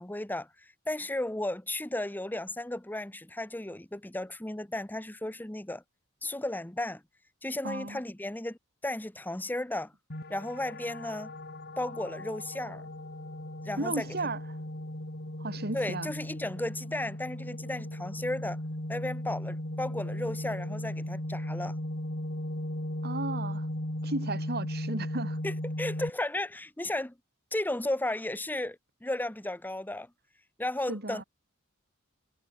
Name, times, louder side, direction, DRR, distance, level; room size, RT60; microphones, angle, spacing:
voice 1, 0.0-5.8 6.2-7.0 7.4-9.9 10.3-11.3 11.8-12.8 13.6-14.1 15.7-18.6 18.9-21.8 25.4-27.2 27.5-30.1 30.6-31.2, left 1 dB, 10° left, 0.9 m, -34 dB
voice 2, 7.6-8.0 13.8-14.4 15.4-16.1 23.0-23.7 24.0-25.4 30.9-31.2, right 2 dB, 50° right, 4.7 m, -34 dB
sound 1, 10.1-26.1, left 1 dB, 50° left, 3.7 m, -37 dB
head